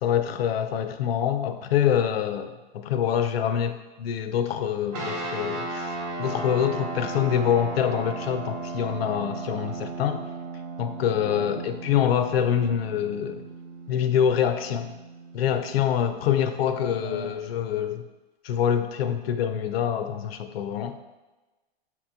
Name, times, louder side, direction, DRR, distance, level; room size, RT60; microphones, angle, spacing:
voice 1, 0.0-10.2 10.8-13.4 13.9-14.9 15.3-18.0 18.4-21.0, left 9 dB, 75° left, 9 dB, 0.5 m, -25 dB
sound 1, 4.9-16.7, right 3 dB, 40° right, 0.9 m, -36 dB
voice 2, 11.2-11.7 16.7-17.4, right 1 dB, 15° right, -3 dB, 0.5 m, -37 dB
7.0 x 3.0 x 2.2 m, 1.1 s
hypercardioid pair, 150°, 30 cm